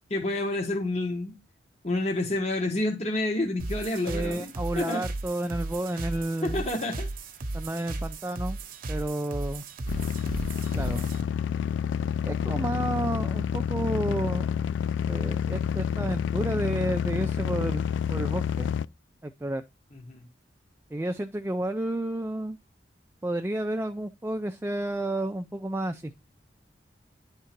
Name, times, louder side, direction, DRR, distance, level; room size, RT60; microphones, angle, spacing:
voice 1, 0.1-1.3 1.8-5.0 6.4-7.1 19.9-20.2, left 2 dB, 40° left, 1.3 m, -29 dB
sound 1, 3.6-11.2, right 2 dB, 50° right, 0.9 m, -35 dB
voice 2, 4.1-6.6 7.5-8.6 8.9-9.6 10.7-11.1 12.2-14.5 15.1-18.7 19.2-19.6 20.9-22.6 23.2-26.1, right 1 dB, 15° right, 0.4 m, -31 dB
sound 2, 9.9-18.9, left 7 dB, 80° left, 0.3 m, -28 dB
10.5 x 3.7 x 4.5 m
head